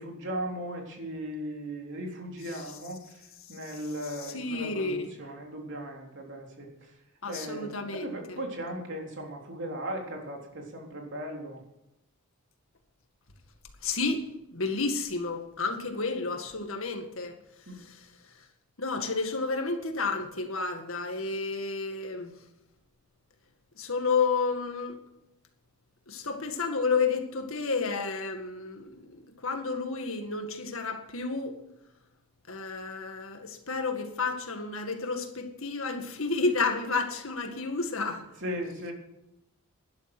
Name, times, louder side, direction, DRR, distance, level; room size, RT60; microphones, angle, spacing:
voice 1, 0.0-7.0 7.3-11.6 17.7-17.8 38.4-38.9, right 1 dB, 55° right, 3.6 m, -37 dB
voice 2, 4.2-5.1 7.2-8.1 13.8-14.2 14.5-17.4 17.8-18.1 18.8-22.3 23.8-25.0 26.1-31.6 32.5-38.2, left 4 dB, 65° left, 2.0 m, -31 dB
12.0 x 11.5 x 6.2 m
head